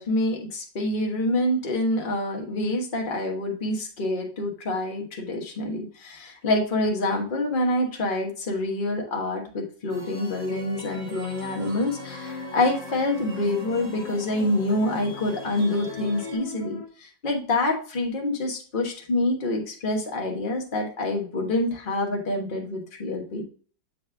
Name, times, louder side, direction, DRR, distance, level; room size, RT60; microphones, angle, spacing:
voice 1, 0.0-23.4, left 1 dB, 30° left, 1 dB, 1.1 m, -26 dB
sound 1, 9.9-16.4, equal, 5° left, 2.9 m, -41 dB
sound 2, 11.4-16.9, left 6 dB, 55° left, 1.3 m, -41 dB
7.3 x 4.2 x 3.3 m, 0.42 s
omnidirectional pair, 2.1 m